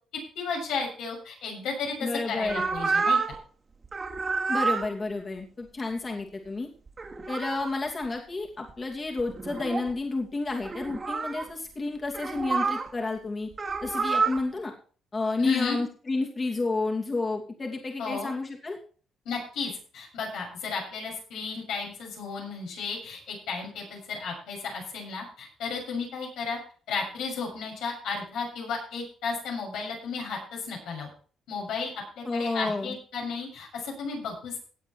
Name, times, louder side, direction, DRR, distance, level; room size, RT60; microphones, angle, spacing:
voice 1, 0.1-3.2 15.4-15.8 18.0-18.3 19.3-26.6 26.9-31.1 31.5-34.6, left 4 dB, 85° left, -1 dB, 6.8 m, -34 dB
voice 2, 2.0-2.7 4.5-6.7 7.3-13.5 13.8-14.7 15.1-18.8 32.2-33.0, left 3 dB, 30° left, 1 dB, 2.6 m, -30 dB
sound 1, 2.5-3.4 3.8-4.9 6.9-7.8 8.7-8.8 9.2-9.9 10.6-11.5 12.1-12.9 13.5-14.4, right 4 dB, 35° right, 2.3 m, -28 dB
17.5 x 8.3 x 4.5 m, 0.41 s
cardioid pair, 90°, 0 cm